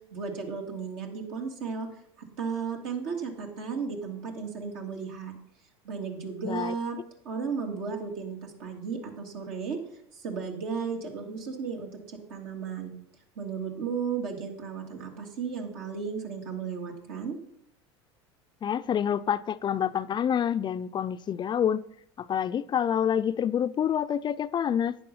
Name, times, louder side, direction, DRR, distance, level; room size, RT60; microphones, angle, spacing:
voice 1, 0.1-1.9 2.2-5.4 5.8-7.0 7.2-9.8 10.1-12.9 13.4-17.4, right 5 dB, 70° right, 2.8 m, -34 dB
voice 2, 6.4-6.7 18.6-21.8 22.2-25.0, left 9 dB, 30° left, 0.5 m, -27 dB
11.5 x 9.3 x 5.5 m
hypercardioid pair, 80°, 14 cm